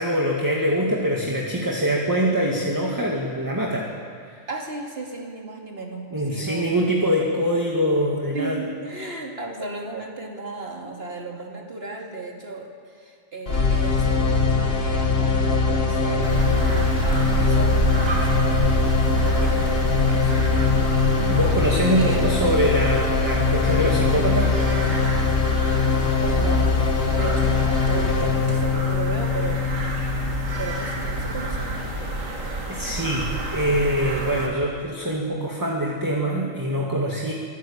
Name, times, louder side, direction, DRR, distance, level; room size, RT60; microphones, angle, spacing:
voice 1, 0.0-3.9 4.2-4.4 6.1-8.6 21.3-24.7 32.7-37.3, equal, 15° right, -1 dB, 2.0 m, -24 dB
voice 2, 4.5-6.8 8.3-18.5 19.0-20.3 22.0-22.8 26.2-26.7 27.1-29.6 30.6-31.7, right 2 dB, 50° right, 0 dB, 2.9 m, -34 dB
sound 1, 13.5-31.5, left 4 dB, 50° left, 1.8 m, -22 dB
sound 2, 16.2-34.5, right 2 dB, 75° right, 3.2 m, -29 dB
24.5 x 14.0 x 8.7 m, 2.1 s
omnidirectional pair, 1.4 m